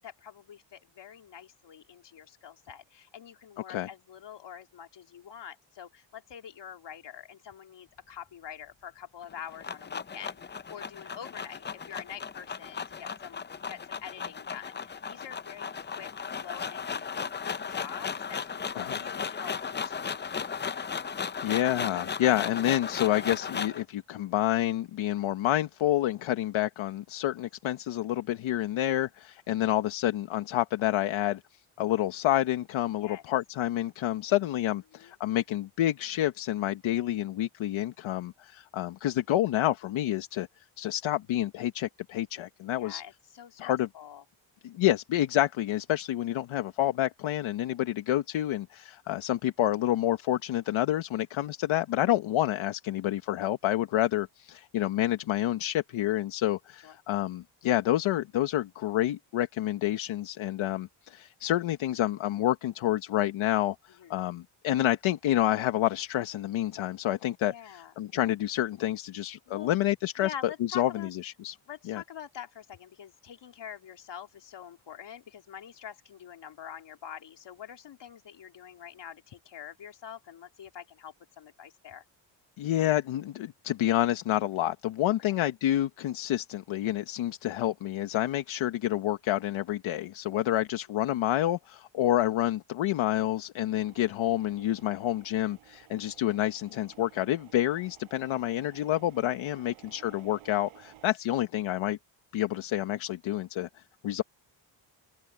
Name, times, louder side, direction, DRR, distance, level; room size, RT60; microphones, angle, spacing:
voice 1, 0.0-20.6 32.9-33.2 34.9-35.1 42.7-44.2 56.8-57.0 64.0-64.1 67.4-67.9 69.5-69.7 70.2-71.1 71.7-82.0 99.5-99.7, left 9 dB, 60° left, 3.2 m, -46 dB
sound 1, 9.2-23.8, left 6 dB, 20° left, 0.6 m, -36 dB
voice 2, 21.2-31.4 31.8-40.5 40.8-43.0 43.6-43.9 44.6-70.3 70.7-71.6 71.9-72.0 82.6-102.0 102.3-103.7 104.0-104.2, left 13 dB, 75° left, 1.3 m, -28 dB
sound 2, 93.8-101.2, right 13 dB, 85° right, 6.1 m, -56 dB
open air
cardioid pair, 95°, 48 cm